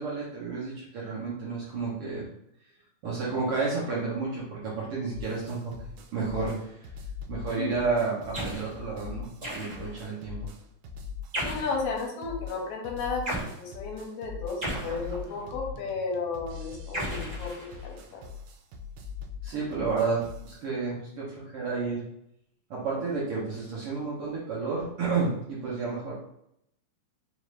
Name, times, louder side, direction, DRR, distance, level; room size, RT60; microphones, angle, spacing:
voice 1, 0.0-2.3 3.0-5.6 6.1-6.7 7.3-10.5 19.4-22.0 22.7-26.1, right 4 dB, 65° right, -6 dB, 1.5 m, -31 dB
sound 1, 5.1-20.6, left 6 dB, 90° right, 2.1 m, -42 dB
sound 2, 8.3-8.7 9.4-10.0 11.3-11.8 13.3-13.5 14.6-15.5 16.9-18.0, right 1 dB, 30° right, 0.9 m, -34 dB
voice 2, 11.4-18.2, left 4 dB, 80° left, 0 dB, 2.1 m, -34 dB
4.9 x 2.5 x 3.1 m, 0.76 s
omnidirectional pair, 3.5 m